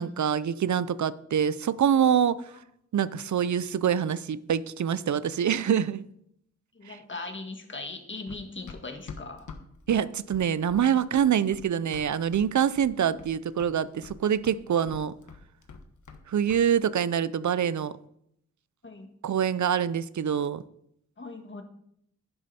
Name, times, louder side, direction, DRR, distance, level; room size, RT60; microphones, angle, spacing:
voice 1, 0.0-2.4 2.9-6.0 6.9-7.0 9.9-15.1 16.3-17.9 19.2-20.6, right 8 dB, 75° right, 0.5 m, -25 dB
voice 2, 6.7-9.5 11.1-11.2 13.0-13.1 18.8-19.1 21.2-21.6, left 3 dB, 40° left, 1.6 m, -39 dB
Run, 8.3-12.5 12.8-13.3 13.6-16.2 16.5-16.7, left 5 dB, 85° left, 1.2 m, -45 dB
11.0 x 10.5 x 4.3 m
wide cardioid pair, 110°, 29 cm